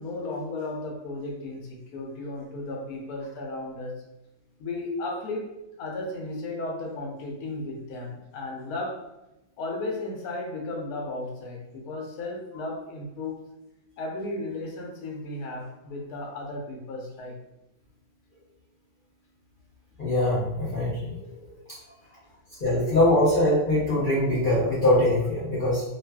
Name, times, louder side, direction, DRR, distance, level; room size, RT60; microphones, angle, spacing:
voice 1, 0.0-4.0 4.6-5.5 5.8-9.1 9.6-13.4 14.0-17.4 22.0-22.1, left 2 dB, 75° left, 0 dB, 1.1 m, -34 dB
voice 2, 20.0-21.2 22.6-25.8, left 1 dB, 50° left, -8 dB, 0.7 m, -22 dB
2.6 x 2.4 x 2.2 m, 0.92 s
omnidirectional pair, 1.6 m